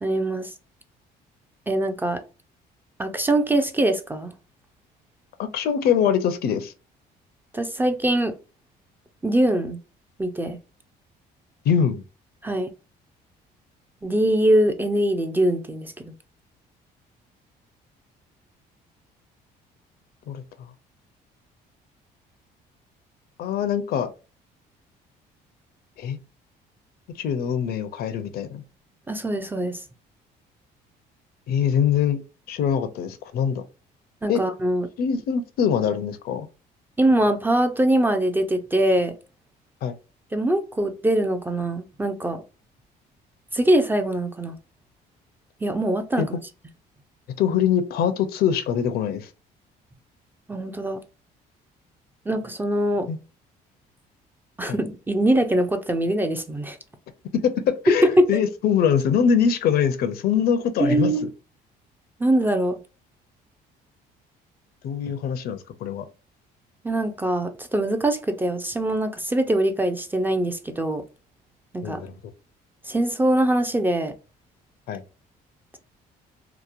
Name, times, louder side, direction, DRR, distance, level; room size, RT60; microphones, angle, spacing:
voice 1, 0.0-0.5 1.7-2.2 3.0-4.3 7.5-8.3 9.2-9.8 10.2-10.6 12.4-12.7 14.0-16.1 29.1-29.8 34.2-34.9 37.0-39.1 40.3-42.4 43.5-44.6 45.6-46.4 50.5-51.0 52.3-53.1 54.6-56.8 58.0-58.3 60.8-61.2 62.2-62.8 66.8-71.0 71.7-72.0 72.9-74.1, right 1 dB, 10° right, 0.3 m, -22 dB
voice 2, 5.4-6.7 11.6-12.0 20.3-20.7 23.4-24.1 26.0-26.2 27.2-28.6 31.5-32.2 32.5-33.6 34.3-34.4 35.0-36.5 39.8-39.9 46.2-46.3 47.4-49.3 53.1-53.2 54.6-54.8 57.4-57.5 57.8-61.1 64.8-66.1 71.8-72.1 74.9-75.0, left 8 dB, 65° left, 0.5 m, -23 dB
2.8 x 2.1 x 2.4 m
cardioid pair, 110°, 17 cm